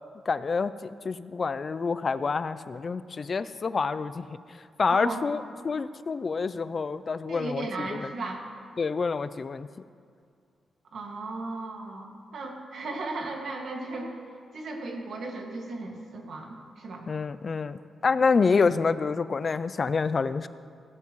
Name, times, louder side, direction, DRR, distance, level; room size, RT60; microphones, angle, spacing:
voice 1, 0.3-4.2 4.8-7.9 8.8-9.7 17.1-20.5, left 4 dB, 40° left, 14 dB, 0.3 m, -27 dB
voice 2, 4.9-5.3 7.3-8.4 10.9-14.1 14.5-17.0, right 2 dB, 65° right, 1 dB, 1.9 m, -36 dB
16.5 x 13.0 x 3.1 m, 2.2 s
cardioid pair, 115°, 0 cm